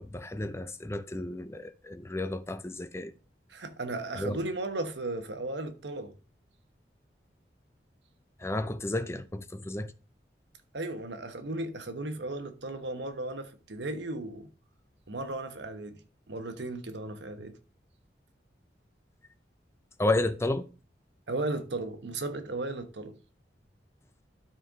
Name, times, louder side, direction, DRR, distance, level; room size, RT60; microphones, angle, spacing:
voice 1, 0.0-3.1 4.2-4.4 8.4-9.9 20.0-20.7, left 2 dB, 15° left, 0.4 m, -32 dB
voice 2, 3.5-6.1 10.7-14.5 15.1-16.0 16.3-17.6 21.3-23.2, right 2 dB, 80° right, 1.1 m, -35 dB
12.5 x 4.5 x 3.7 m
head